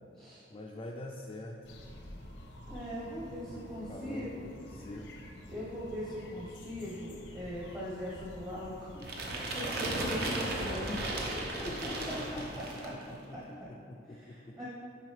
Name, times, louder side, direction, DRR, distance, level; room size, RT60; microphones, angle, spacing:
voice 1, 0.5-1.8 3.5-5.1 11.6-14.6, left 1 dB, 30° left, -1 dB, 0.3 m, -45 dB
sound 1, 1.6-12.6, left 1 dB, 85° left, 0.8 m, -49 dB
voice 2, 2.7-4.4 5.5-8.9 9.2-11.0 11.3-11.4 12.3-12.4 12.7-12.9 13.3-13.4 14.1-14.7, equal, 20° right, -8 dB, 0.8 m, -40 dB
sound 2, 9.0-13.0, right 1 dB, 60° right, 0.8 m, -35 dB
7.5 x 5.0 x 3.2 m, 2.5 s
head